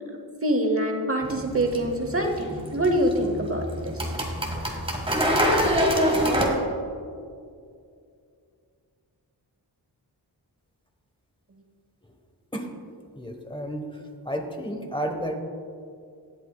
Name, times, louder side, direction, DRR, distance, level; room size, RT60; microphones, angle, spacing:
voice 1, 0.4-4.1, right 1 dB, 35° right, 4 dB, 0.9 m, -25 dB
sound 1, 1.2-6.5, equal, 15° right, 1.6 m, -26 dB
voice 2, 13.2-15.4, equal, 10° left, 4 dB, 1.1 m, -32 dB
18.5 x 8.1 x 2.3 m, 2.3 s
wide cardioid pair, 85°, 40 cm